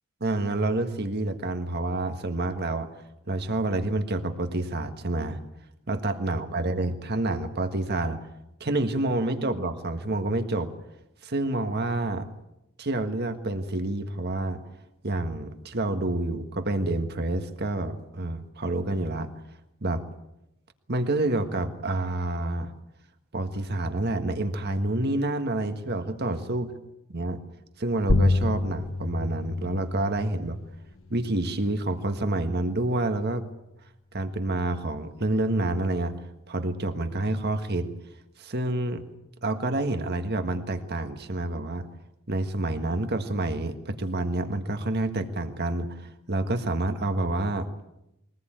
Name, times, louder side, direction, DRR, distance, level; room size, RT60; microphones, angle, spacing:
voice 1, 0.2-2.9 3.3-5.4 5.9-8.2 8.6-10.7 11.2-12.3 12.8-14.6 15.0-19.3 19.8-20.0 20.9-22.7 23.3-26.7 27.1-27.4 27.8-30.6 31.1-33.4 34.1-36.1 36.5-37.9 38.4-39.0 39.4-41.9 42.3-47.7, right 2 dB, 50° right, 7 dB, 1.6 m, -28 dB
sound 1, 28.1-33.2, left 2 dB, 75° left, 1.4 m, -29 dB
23.0 x 19.5 x 9.0 m, 0.87 s
head